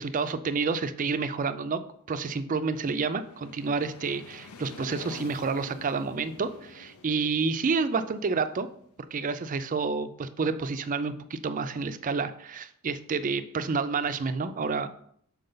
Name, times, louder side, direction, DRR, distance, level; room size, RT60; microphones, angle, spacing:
voice 1, 0.0-1.8 2.1-8.7 9.1-14.9, right 4 dB, 35° right, 11 dB, 0.4 m, -29 dB
sound 1, 2.6-9.3, left 3 dB, 85° left, 0.6 m, -48 dB
6.6 x 4.7 x 3.9 m, 0.65 s
head